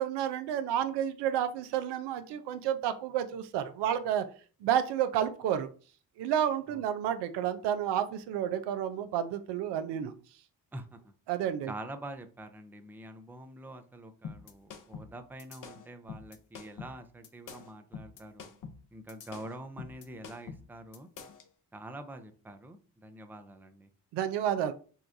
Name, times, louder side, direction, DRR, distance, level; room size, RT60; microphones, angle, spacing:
voice 1, 0.0-4.3 4.6-5.7 6.2-10.1 11.3-11.7 24.1-24.7, right 10 dB, 70° right, 10 dB, 0.5 m, -30 dB
voice 2, 10.7-11.1 11.7-18.5 18.9-21.1 21.7-23.9, right 1 dB, 5° right, 7 dB, 0.5 m, -45 dB
sound 1, 14.2-21.5, left 6 dB, 45° left, 0.7 m, -46 dB
4.3 x 2.3 x 2.5 m, 0.38 s
hypercardioid pair, 45°, 44 cm